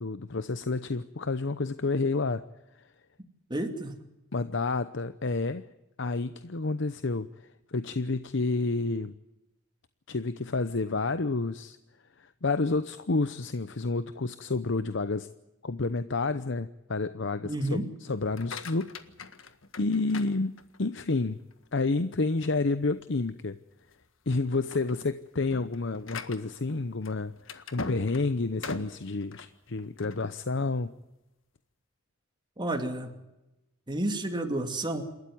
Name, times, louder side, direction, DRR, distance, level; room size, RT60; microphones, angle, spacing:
voice 1, 0.0-2.4 4.3-5.6 6.0-9.1 10.1-11.8 12.2-15.3 15.6-18.9 19.8-20.5 20.8-21.4 21.7-23.6 24.3-30.9, left 3 dB, 65° left, 13 dB, 0.8 m, -30 dB
voice 2, 3.5-3.9 17.4-17.9 32.6-33.1 33.9-35.0, right 1 dB, 25° right, 5 dB, 2.6 m, -30 dB
sound 1, 18.2-21.0 21.5-22.0 22.4-22.5 22.9-23.1 23.8-24.0 24.4-30.3, left 3 dB, 80° left, 1.7 m, -41 dB
28.5 x 13.5 x 9.3 m, 0.96 s
head